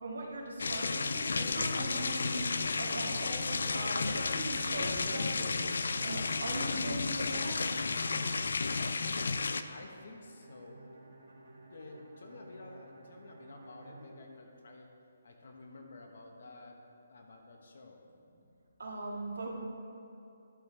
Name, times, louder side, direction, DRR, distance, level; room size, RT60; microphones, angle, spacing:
voice 1, 0.0-2.5 2.8-7.6 18.8-19.6, right 2 dB, 90° right, -2 dB, 1.8 m, -40 dB
sound 1, 0.6-9.6, left 4 dB, 70° left, 0.4 m, -32 dB
Accelerating revving vroom, 2.3-9.7, right 3 dB, 15° right, 0.5 m, -58 dB
voice 2, 9.1-11.0 11.7-14.9 15.2-16.8 17.1-18.0, left 2 dB, 55° left, 2 dB, 1.2 m, -51 dB
Bowed string instrument, 10.2-15.1, right 1 dB, 60° right, 1.6 m, -55 dB
11.0 x 8.1 x 3.3 m, 2.8 s
hypercardioid pair, 175°, 0 cm